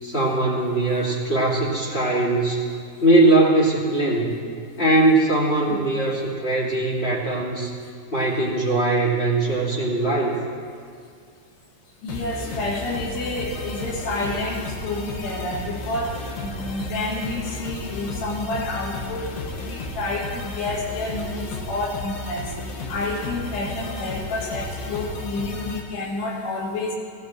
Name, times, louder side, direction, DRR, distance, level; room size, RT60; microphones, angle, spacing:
voice 1, 0.0-2.6 3.0-4.3 4.8-7.7 8.1-10.3, right 2 dB, 20° left, -4 dB, 1.8 m, -20 dB
voice 2, 12.0-19.3 19.6-22.5 22.9-26.9, left 2 dB, 90° left, -2 dB, 4.4 m, -29 dB
sound 1, 12.1-25.8, left 2 dB, 65° left, 3.0 m, -33 dB
19.0 x 15.5 x 4.4 m, 2.3 s
omnidirectional pair, 4.6 m